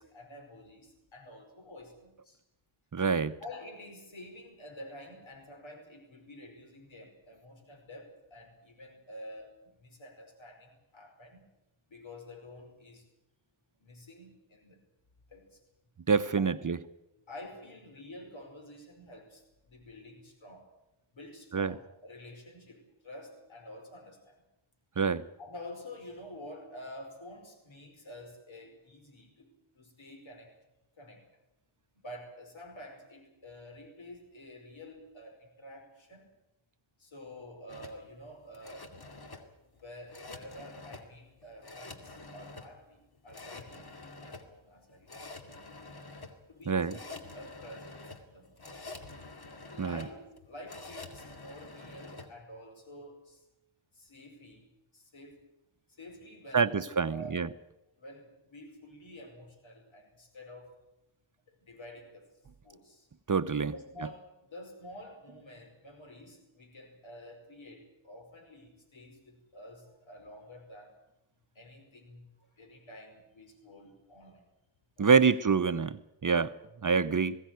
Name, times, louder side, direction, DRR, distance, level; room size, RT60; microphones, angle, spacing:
voice 1, 0.0-2.4 3.4-11.5 11.9-13.1 13.8-14.8 15.3-15.6 16.4-16.6 17.1-20.7 21.1-24.4 25.4-30.5 31.0-31.3 32.0-36.3 37.0-39.0 39.8-45.1 46.5-48.7 49.7-53.4 53.9-54.7 54.9-55.5 55.9-57.5 58.0-60.8 61.5-62.3 62.6-63.1 63.7-70.9 71.6-72.3 72.6-74.4 75.0-75.3, left 1 dB, 75° left, 4 dB, 5.4 m, -49 dB
voice 2, 2.9-3.4 16.1-16.8 21.5-21.8 25.0-25.2 46.7-46.9 49.8-50.0 56.5-57.5 63.3-63.7 75.0-76.6 76.8-77.4, right 5 dB, 40° right, 11 dB, 0.8 m, -26 dB
sound 1, 37.7-52.3, left 3 dB, 50° left, 2.5 m, -47 dB
21.0 x 16.5 x 9.4 m, 0.91 s
wide cardioid pair, 75°, 47 cm